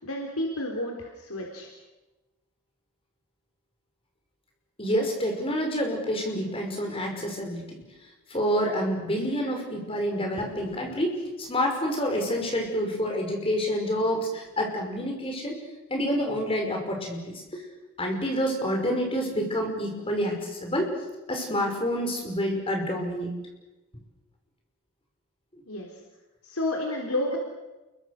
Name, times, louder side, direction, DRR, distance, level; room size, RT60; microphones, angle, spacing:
voice 1, 0.0-1.7 25.7-25.9 26.4-27.4, left 1 dB, 80° left, 0 dB, 3.8 m, -30 dB
voice 2, 4.8-7.8 8.3-15.6 15.9-17.6 18.0-20.9 21.3-23.3, equal, 25° left, 2 dB, 5.5 m, -28 dB
29.0 x 22.5 x 6.6 m, 1.1 s
head